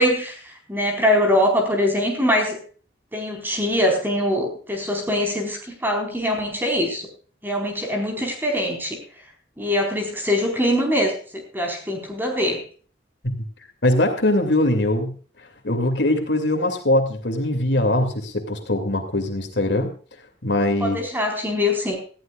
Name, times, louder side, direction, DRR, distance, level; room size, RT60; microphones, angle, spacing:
voice 1, 0.0-2.6 3.1-7.1 7.4-9.0 9.6-12.6 20.8-22.0, left 1 dB, 10° right, 2 dB, 4.4 m, -23 dB
voice 2, 13.8-15.2 15.6-19.9 20.4-21.0, left 1 dB, 70° left, 5 dB, 2.5 m, -21 dB
19.0 x 14.5 x 2.4 m, 0.40 s
head